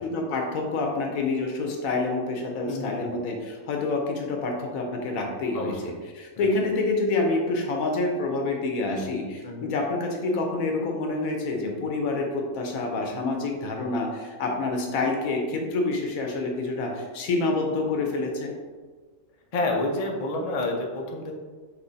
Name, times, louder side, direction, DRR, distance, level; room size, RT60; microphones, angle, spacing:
voice 1, 0.0-5.7 6.1-18.5, left 3 dB, 85° left, 2 dB, 1.2 m, -27 dB
voice 2, 2.6-3.1 5.5-5.8 6.4-6.6 9.4-9.7 19.5-21.3, left 2 dB, 55° left, 1 dB, 0.4 m, -29 dB
5.7 x 3.0 x 2.6 m, 1.4 s
omnidirectional pair, 1.4 m